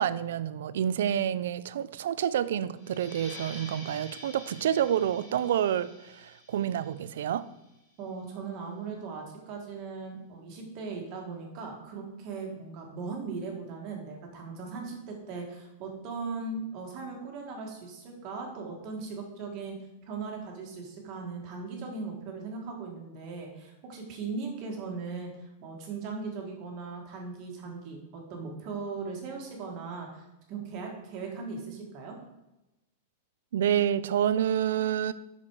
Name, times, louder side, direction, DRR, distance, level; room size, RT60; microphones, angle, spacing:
voice 1, 0.0-7.5 33.5-35.1, right 10 dB, 70° right, 0.4 m, -28 dB
sound 1, 2.7-8.0, left 1 dB, 20° left, 3.2 m, -48 dB
voice 2, 8.0-19.8 20.1-32.2, right 4 dB, 30° right, 1.5 m, -38 dB
7.7 x 5.9 x 4.6 m
supercardioid pair, 175°, 0 cm